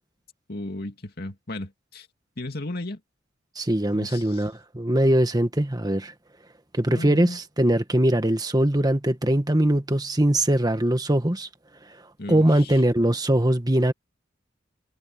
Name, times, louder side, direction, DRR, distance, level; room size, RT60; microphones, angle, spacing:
voice 1, 0.5-2.1 2.4-3.0 3.9-4.4 6.9-7.4 12.2-12.8, left 2 dB, 50° left, 2.5 m, -35 dB
voice 2, 3.6-6.1 6.7-11.5 12.3-13.9, right 1 dB, 20° right, 1.5 m, -21 dB
head